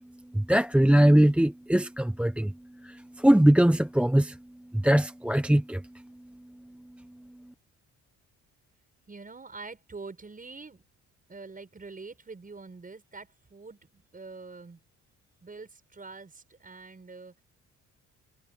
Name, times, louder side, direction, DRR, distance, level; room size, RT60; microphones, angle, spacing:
voice 1, 0.3-2.5 2.8-4.4 4.7-5.8, right 1 dB, 5° right, 0.7 m, -21 dB
voice 2, 9.1-10.8 11.3-14.8 15.4-17.4, right 4 dB, 30° right, 6.7 m, -45 dB
cardioid pair, 90°, 30 cm